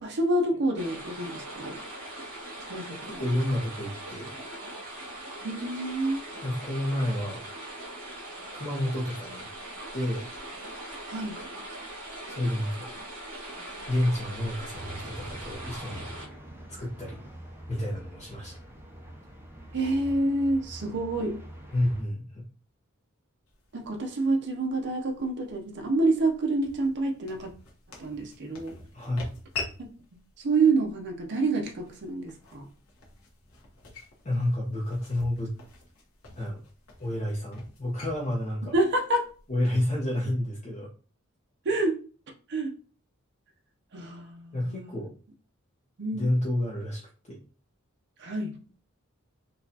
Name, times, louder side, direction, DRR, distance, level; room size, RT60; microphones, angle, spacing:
voice 1, 0.0-1.8 2.7-3.2 5.4-6.2 11.1-11.4 19.7-21.4 23.7-27.5 28.0-28.8 29.8-29.9 30.4-32.7 38.7-39.3 41.6-42.0 42.5-42.7 43.9-45.0 46.0-46.2 48.2-48.6, right 2 dB, 55° right, 0.6 m, -27 dB
sound 1, 0.8-16.3, right 1 dB, 70° right, 1.5 m, -41 dB
voice 2, 3.2-4.3 6.4-7.4 8.5-9.5 9.9-10.2 12.3-12.9 13.9-16.1 16.7-17.2 17.7-18.6 21.7-22.5 28.9-29.3 34.2-35.5 36.4-36.6 37.0-38.7 39.5-40.9 44.5-45.1 46.1-47.4, left 1 dB, 35° left, 0.7 m, -30 dB
sound 2, 14.7-22.0, right 1 dB, 10° right, 0.6 m, -45 dB
sound 3, 23.5-39.6, left 3 dB, 80° left, 1.0 m, -46 dB
4.0 x 2.4 x 2.7 m
head